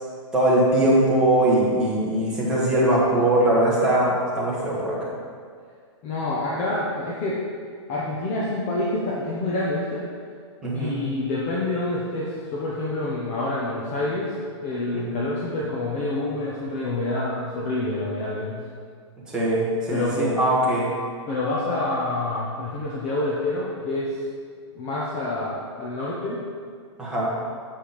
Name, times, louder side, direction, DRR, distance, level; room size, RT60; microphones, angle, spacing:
voice 1, 0.3-5.0 10.6-11.0 14.9-15.1 19.3-20.9 27.0-27.3, right 1 dB, 5° right, -8 dB, 1.5 m, -21 dB
voice 2, 6.0-7.4 7.9-10.0 10.7-14.3 14.6-18.7 19.9-20.4 21.3-24.2 24.7-26.4, left 2 dB, 30° left, -5 dB, 0.9 m, -27 dB
7.6 x 5.1 x 5.1 m, 2.1 s
hypercardioid pair, 165°, 16 cm